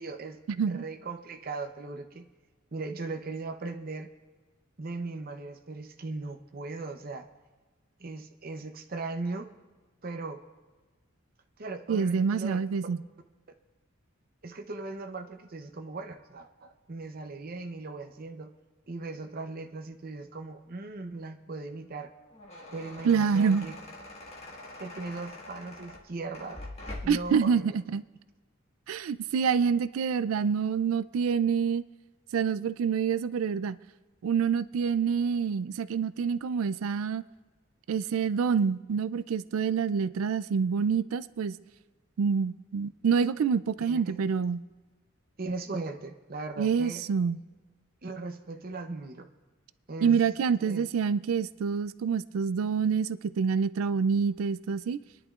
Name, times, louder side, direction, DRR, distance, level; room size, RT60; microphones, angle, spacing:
voice 1, 0.0-2.3 2.7-4.1 4.8-7.3 8.0-9.5 10.0-10.4 11.6-12.6 14.4-18.5 18.9-22.1 22.7-23.7 24.8-26.7 27.0-27.8 43.8-44.2 45.4-47.0 48.0-49.3 49.9-50.2 50.6-50.9, right 3 dB, 45° right, 0.7 m, -38 dB
voice 2, 11.9-13.0 23.0-23.7 27.1-28.0 28.9-31.8 32.3-33.8 34.2-37.2 37.9-41.6 42.2-44.6 46.6-47.4 50.0-55.0, right 6 dB, 85° right, 0.4 m, -27 dB
sound 1, 22.1-27.3, left 1 dB, 30° left, 1.6 m, -44 dB
27.5 x 10.5 x 2.4 m
head